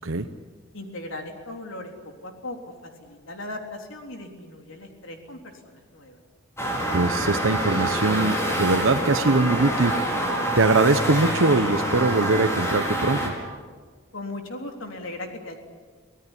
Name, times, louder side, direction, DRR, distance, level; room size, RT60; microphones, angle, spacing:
voice 1, 0.7-2.6 2.8-6.2 14.1-15.6, left 2 dB, 75° left, 3 dB, 3.6 m, -38 dB
sound 1, 6.6-13.3, right 1 dB, 15° left, 5.2 m, -26 dB
voice 2, 6.9-10.2 10.6-13.3, right 3 dB, 80° right, 8 dB, 1.0 m, -22 dB
25.0 x 17.5 x 9.9 m, 1.5 s
head